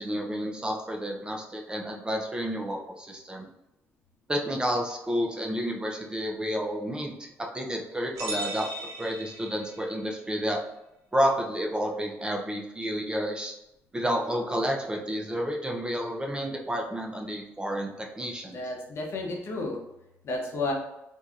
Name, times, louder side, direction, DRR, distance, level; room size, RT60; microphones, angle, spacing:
voice 1, 0.0-3.5 4.3-8.7 9.0-10.6 11.1-13.6 13.9-18.6, equal, 15° right, 1 dB, 0.5 m, -30 dB
sound 1, 8.2-10.0, right 1 dB, 75° right, 0.7 m, -37 dB
voice 2, 18.5-19.8 20.2-20.7, left 2 dB, 55° left, 1 dB, 0.7 m, -31 dB
3.0 x 2.6 x 2.4 m, 0.87 s
cardioid pair, 80°, 5 cm